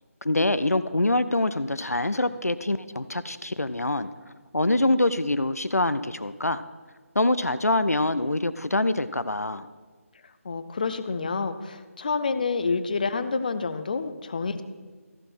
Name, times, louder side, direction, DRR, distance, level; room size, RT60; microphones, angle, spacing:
voice 1, 0.2-4.1 4.5-6.6 7.2-9.7, left 2 dB, 90° left, 13 dB, 0.5 m, -25 dB
voice 2, 10.4-14.6, left 4 dB, 35° left, 11 dB, 0.5 m, -28 dB
14.0 x 4.9 x 6.0 m, 1.5 s
figure-of-eight pair, 155°, 8 cm